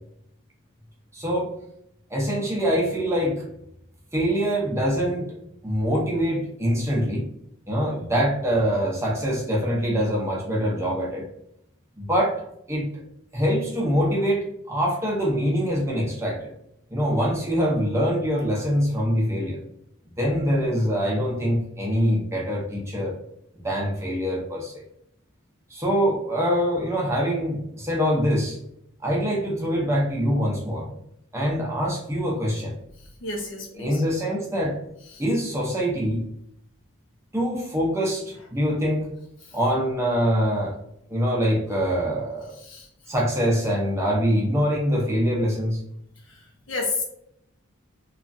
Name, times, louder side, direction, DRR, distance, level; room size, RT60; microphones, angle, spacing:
voice 1, 1.1-1.5 2.1-3.4 4.1-5.4 5.6-7.3 7.7-11.3 12.0-12.4 12.7-12.9 13.3-16.5 16.9-19.6 20.2-23.2 23.6-24.8 25.7-28.6 29.0-30.9 31.3-32.7 33.8-34.8 35.2-36.3 37.3-39.1 39.5-40.8 41.1-42.5 43.1-45.8, equal, 15° right, -2 dB, 0.6 m, -24 dB
voice 2, 33.0-34.0 35.1-35.2 39.4-39.6 42.5-43.1 46.2-47.0, left 3 dB, 60° left, -1 dB, 0.7 m, -33 dB
3.0 x 2.3 x 2.5 m, 0.76 s
head